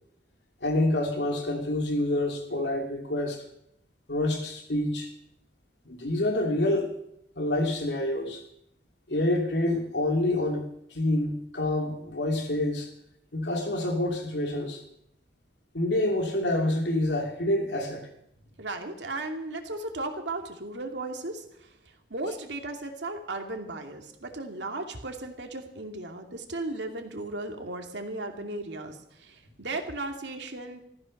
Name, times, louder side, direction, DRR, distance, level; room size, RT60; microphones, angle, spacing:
voice 1, 0.6-3.4 4.1-5.1 5.8-6.9 7.4-8.4 9.1-12.9 13.3-14.8 15.7-18.1, left 1 dB, 70° left, 3 dB, 3.1 m, -27 dB
voice 2, 18.6-30.9, right 2 dB, 75° right, 4 dB, 2.6 m, -36 dB
14.5 x 14.5 x 6.6 m, 0.76 s
head